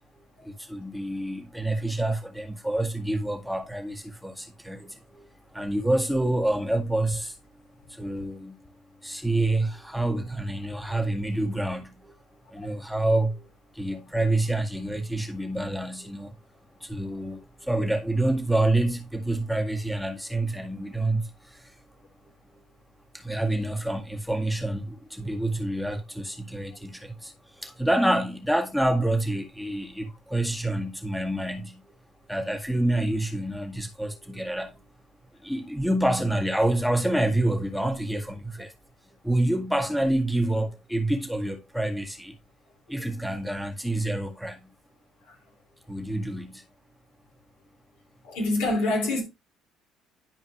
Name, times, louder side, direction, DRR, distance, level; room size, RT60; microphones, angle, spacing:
voice 1, 0.2-5.3 5.5-7.3 8.0-8.6 9.0-12.2 12.5-13.5 13.8-16.4 16.8-21.3 23.1-27.3 27.6-31.8 32.3-34.7 35.4-38.7 39.2-42.4 42.9-44.6 45.9-46.6, right 1 dB, ahead, 1.8 m, -27 dB
voice 2, 48.2-49.2, left 2 dB, 80° left, 3.8 m, -25 dB
11.0 x 5.0 x 3.2 m
hypercardioid pair, 60°, 0 cm